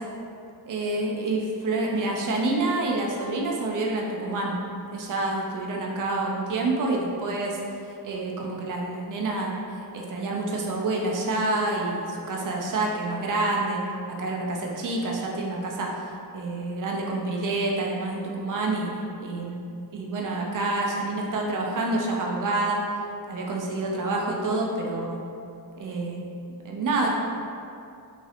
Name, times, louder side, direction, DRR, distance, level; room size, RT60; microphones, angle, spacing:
voice 1, 0.7-4.6 4.9-7.6 8.0-13.8 14.1-18.9 19.2-19.6 19.9-22.8 23.3-25.2 25.8-26.3 26.6-27.1, right 2 dB, 50° right, -1 dB, 0.5 m, -28 dB
2.9 x 2.8 x 2.4 m, 2.6 s
wide cardioid pair, 120°, 40 cm